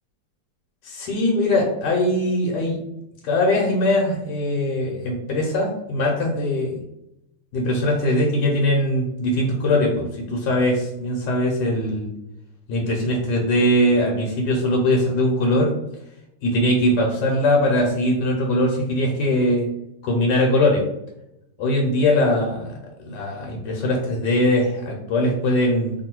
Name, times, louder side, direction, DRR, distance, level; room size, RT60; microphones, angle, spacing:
voice 1, 0.8-2.8 3.2-6.8 7.5-12.1 12.7-15.7 16.4-19.7 20.0-20.8 21.6-22.7 23.0-25.9, left 1 dB, 65° left, -1 dB, 1.2 m, -21 dB
3.0 x 2.6 x 4.4 m, 0.85 s
omnidirectional pair, 2.3 m